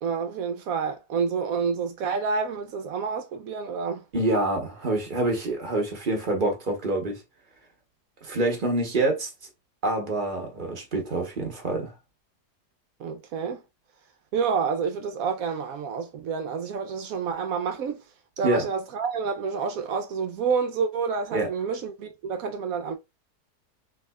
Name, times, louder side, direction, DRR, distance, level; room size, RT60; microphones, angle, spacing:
voice 1, 0.0-4.0 13.0-13.6 14.3-18.0 18.4-23.0, right 5 dB, 70° right, 0.8 m, -28 dB
voice 2, 4.1-7.2 8.2-9.3 9.8-11.9 18.4-18.7 21.3-21.5, right 2 dB, 40° right, 0.8 m, -26 dB
3.5 x 3.2 x 2.2 m
omnidirectional pair, 1.9 m